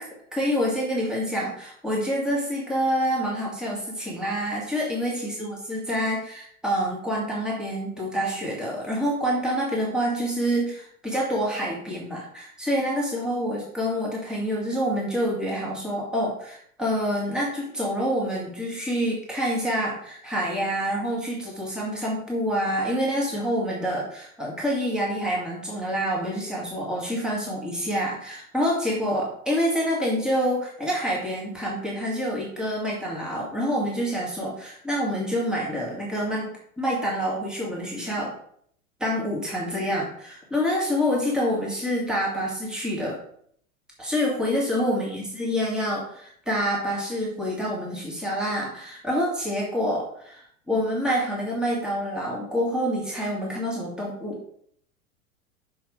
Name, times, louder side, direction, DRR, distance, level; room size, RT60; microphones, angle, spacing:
voice 1, 0.0-38.3 39.0-43.2 44.0-54.4, equal, ahead, -4 dB, 2.2 m, -27 dB
6.3 x 5.8 x 5.0 m, 0.65 s
figure-of-eight pair, 95°, 44 cm